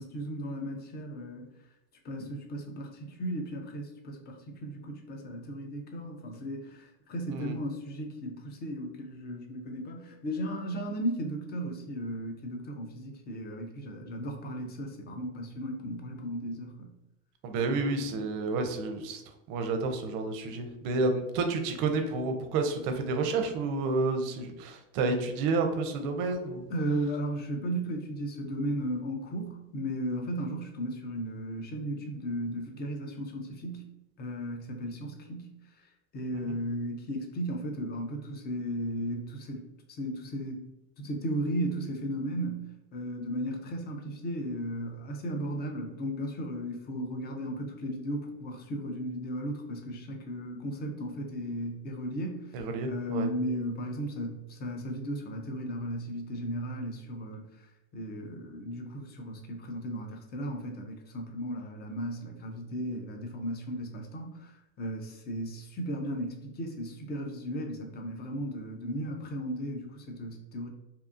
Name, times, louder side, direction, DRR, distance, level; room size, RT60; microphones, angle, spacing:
voice 1, 0.0-1.5 2.0-16.9 26.7-33.9 34.2-35.5 36.1-40.6 41.0-57.5 57.9-70.7, equal, 25° left, 3 dB, 0.4 m, -35 dB
voice 2, 17.4-19.2 19.5-26.6 36.3-36.5 52.5-53.3, right 3 dB, 55° right, 6 dB, 0.5 m, -30 dB
2.7 x 2.3 x 2.5 m, 0.92 s
supercardioid pair, 115°, 42 cm